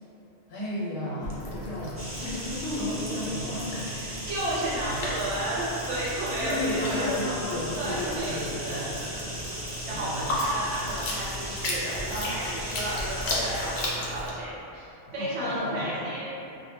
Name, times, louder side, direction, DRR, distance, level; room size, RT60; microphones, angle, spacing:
voice 1, 0.5-4.0 4.8-5.3 6.4-9.1 9.9-10.4 15.2-16.0, left 1 dB, 80° left, -7 dB, 1.0 m, -33 dB
sound 1, 1.2-14.3, left 1 dB, 60° left, 0.5 m, -35 dB
sound 2, 2.0-13.9, equal, 25° right, 0.3 m, -38 dB
voice 2, 3.8-7.1 7.7-9.6 9.9-14.9 15.1-16.4, right 1 dB, 75° right, -7 dB, 1.0 m, -33 dB
2.1 x 2.1 x 3.2 m, 2.8 s
omnidirectional pair, 1.2 m